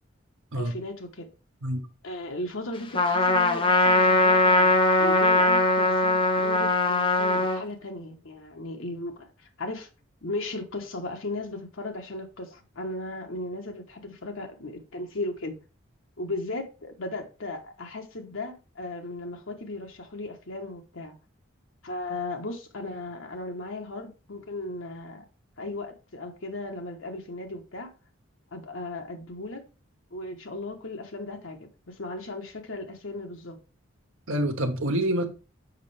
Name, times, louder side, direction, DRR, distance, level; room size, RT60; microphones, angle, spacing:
voice 1, 0.5-1.3 2.0-9.3 9.6-9.9 10.2-15.5 16.2-21.1 21.8-25.3 25.6-27.9 28.5-29.6 30.1-33.6, left 2 dB, 75° left, 1.2 m, -36 dB
Trumpet, 2.9-7.6, left 2 dB, 25° left, 0.8 m, -21 dB
voice 2, 34.3-35.2, right 1 dB, 80° right, 1.2 m, -26 dB
6.6 x 5.4 x 3.4 m
head